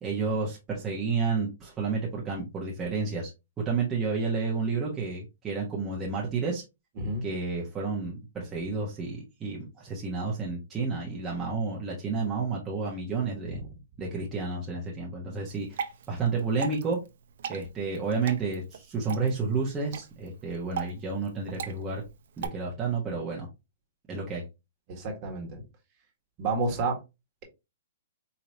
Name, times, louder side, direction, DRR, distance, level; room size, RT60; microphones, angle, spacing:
voice 1, 0.0-3.3 3.6-6.6 7.2-13.6 14.0-17.0 17.5-22.0 22.4-23.5 24.1-24.4, right 4 dB, 15° right, 1.1 m, -31 dB
Water / Drip, 15.5-22.5, right 7 dB, 65° right, 0.6 m, -40 dB
voice 2, 24.9-25.6 26.4-27.0, right 3 dB, 35° right, 1.5 m, -30 dB
4.6 x 2.9 x 2.7 m
hypercardioid pair, 145°, 0 cm